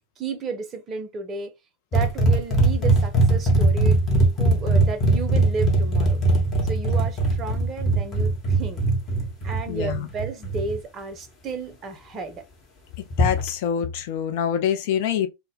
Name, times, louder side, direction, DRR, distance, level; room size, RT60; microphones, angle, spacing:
voice 1, 0.2-1.5 1.9-4.0 4.4-6.2 6.7-8.8 9.4-12.4, right 4 dB, 25° right, 0.6 m, -33 dB
sound 1, 1.9-10.7 13.1-13.5, right 2 dB, 30° left, 1.0 m, -20 dB
voice 2, 9.7-10.1 13.0-15.3, left 8 dB, 50° left, 0.5 m, -25 dB
2.2 x 2.0 x 3.4 m
figure-of-eight pair, 90°, 0 cm